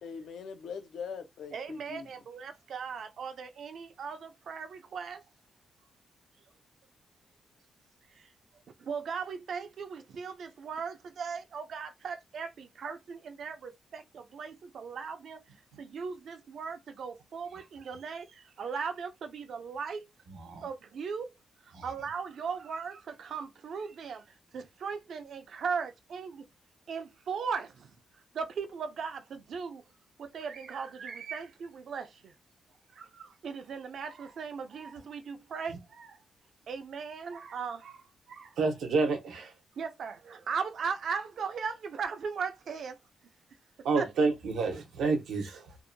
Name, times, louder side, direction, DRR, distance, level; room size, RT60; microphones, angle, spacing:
voice 1, 0.0-2.1, left 6 dB, 75° left, 0.5 m, -41 dB
voice 2, 1.5-5.2 8.1-8.3 8.8-15.4 15.8-20.0 20.6-21.3 21.6-26.5 26.9-27.9 28.3-29.8 30.2-32.4 32.9-36.2 36.7-38.6 39.8-43.0 44.0-44.1, right 6 dB, 60° right, 0.5 m, -38 dB
voice 3, 20.3-20.7 21.7-21.9 35.7-35.8 38.6-39.6 43.8-45.8, right 4 dB, 85° right, 0.8 m, -29 dB
2.6 x 2.1 x 2.6 m
cardioid pair, 130°, 0 cm